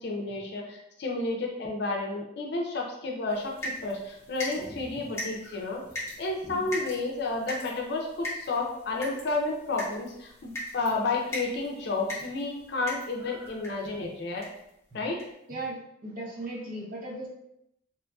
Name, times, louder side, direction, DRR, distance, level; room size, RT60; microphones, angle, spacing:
voice 1, 0.0-5.8 6.2-14.5 14.9-15.2, left 3 dB, 55° left, 0 dB, 0.5 m, -31 dB
sound 1, 3.3-13.9 14.4-14.7 15.2-15.3 15.6-15.7, left 1 dB, 15° left, 0.6 m, -40 dB
voice 2, 15.5-17.3, right 2 dB, 40° right, -4 dB, 0.7 m, -37 dB
2.9 x 2.4 x 2.3 m, 0.79 s
head